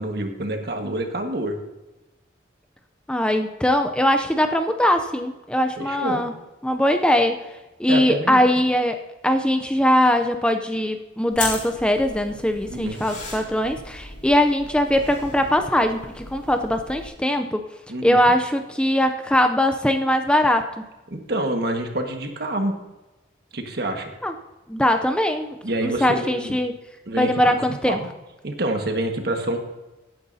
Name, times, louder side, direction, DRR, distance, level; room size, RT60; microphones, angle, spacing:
voice 1, 0.0-1.6 5.8-6.2 7.9-8.5 12.7-13.0 17.9-18.3 21.1-22.8 23.5-24.1 25.6-26.6 27.1-28.1 28.4-29.6, right 1 dB, 60° right, 4 dB, 1.6 m, -27 dB
voice 2, 3.1-6.3 6.6-7.4 7.8-17.6 18.0-20.7 24.2-24.3 24.7-26.7 27.2-28.0, left 1 dB, 5° left, 6 dB, 0.5 m, -21 dB
sound 1, 11.3-17.1, left 2 dB, 45° left, 4.0 m, -36 dB
17.0 x 9.6 x 2.8 m, 1.1 s
head